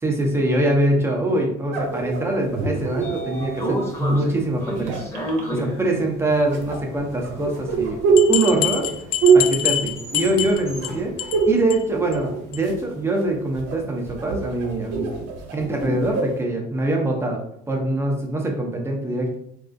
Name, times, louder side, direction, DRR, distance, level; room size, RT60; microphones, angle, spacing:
voice 1, 0.0-5.0 5.5-8.0 8.3-8.9 9.3-15.1 15.5-17.4 17.7-19.3, right 1 dB, 15° right, 1 dB, 0.6 m, -23 dB
sound 1, 1.7-3.9 4.6-5.4 6.5-10.5 10.8-11.7 12.0-12.9 13.2-16.4, right 5 dB, 85° right, 0.7 m, -23 dB
Train / Sliding door, 2.4-12.6, right 1 dB, 15° left, 0.8 m, -33 dB
sound 2, 7.7-7.8 8.2-10.9 11.2-11.4 11.7-11.8 12.1-12.2 12.5-12.6, left 11 dB, 55° left, 0.4 m, -25 dB
3.4 x 2.4 x 2.5 m, 0.74 s
cardioid pair, 125°, 18 cm